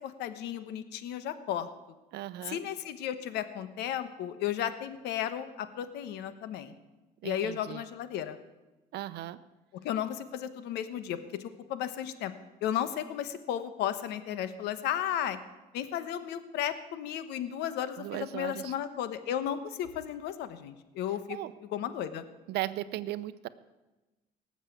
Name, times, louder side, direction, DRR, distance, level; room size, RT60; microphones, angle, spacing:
voice 1, 0.0-1.7 2.5-6.7 7.2-8.4 9.8-12.3 12.6-15.4 15.7-21.4 21.7-22.2, left 10 dB, 85° left, 12 dB, 1.1 m, -34 dB
voice 2, 2.1-2.6 7.2-7.8 8.9-9.4 18.0-18.7 21.3-21.5 22.5-23.5, right 14 dB, 75° right, 15 dB, 0.8 m, -37 dB
18.5 x 7.4 x 8.4 m, 1.1 s
cardioid pair, 110°, 17 cm